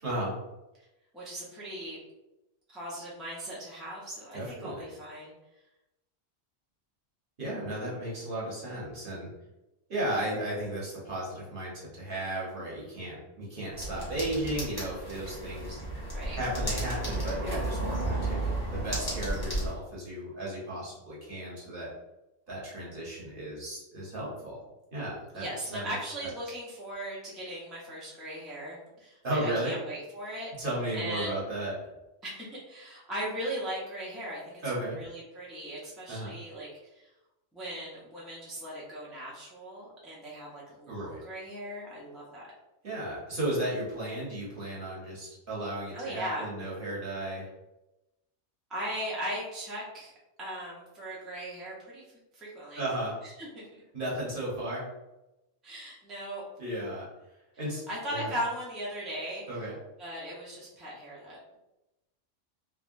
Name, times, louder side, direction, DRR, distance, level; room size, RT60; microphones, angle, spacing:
voice 1, 0.0-0.4 4.3-4.9 7.4-9.4 9.9-15.8 16.4-22.0 22.5-24.6 24.9-26.0 29.2-29.8 30.6-31.9 34.6-35.0 36.1-36.3 40.9-41.2 42.8-47.5 52.8-53.2 53.9-54.9 56.6-57.1 57.6-57.8 58.1-58.3 59.5-59.8, right 1 dB, 50° right, -6 dB, 1.2 m, -34 dB
voice 2, 1.1-2.0 2.7-5.3 16.1-16.4 25.3-30.5 30.9-31.4 32.2-34.6 35.0-37.1 37.5-42.5 45.9-46.7 48.7-50.1 50.4-52.0 52.3-52.8 53.4-53.7 55.6-56.4 57.9-59.7 60.0-61.6, equal, ahead, -7 dB, 0.6 m, -38 dB
sound 1, 13.7-19.7, right 1 dB, 20° left, 0.9 m, -33 dB
3.4 x 2.2 x 2.5 m, 0.97 s
omnidirectional pair, 1.2 m